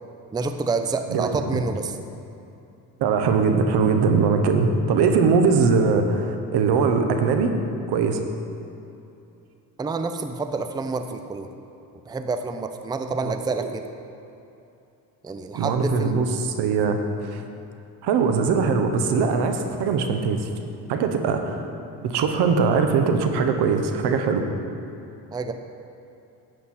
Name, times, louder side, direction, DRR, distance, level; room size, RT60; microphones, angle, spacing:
voice 1, 0.3-1.9 9.8-11.5 12.1-13.8 15.2-16.2 25.3-25.5, right 4 dB, 10° right, 7 dB, 0.4 m, -28 dB
voice 2, 1.1-1.6 3.0-7.5 7.9-8.2 13.2-13.3 13.6-13.7 15.5-17.4 18.0-20.5 20.9-21.6 22.0-24.5, right 5 dB, 80° right, 6 dB, 1.0 m, -21 dB
11.0 x 8.2 x 4.3 m, 2.8 s
cardioid pair, 105°, 40 cm